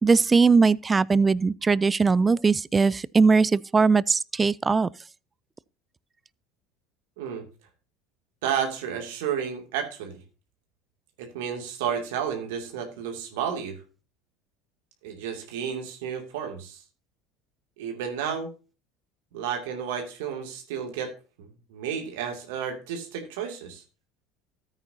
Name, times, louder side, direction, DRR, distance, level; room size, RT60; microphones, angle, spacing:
voice 1, 0.0-4.9, right 4 dB, 25° right, 0.4 m, -20 dB
voice 2, 8.4-10.2 11.2-13.8 15.0-16.8 17.8-18.5 19.3-21.1 21.4-23.8, right 8 dB, 75° right, 2.5 m, -32 dB
13.5 x 9.0 x 2.8 m
hypercardioid pair, 80°, 0 cm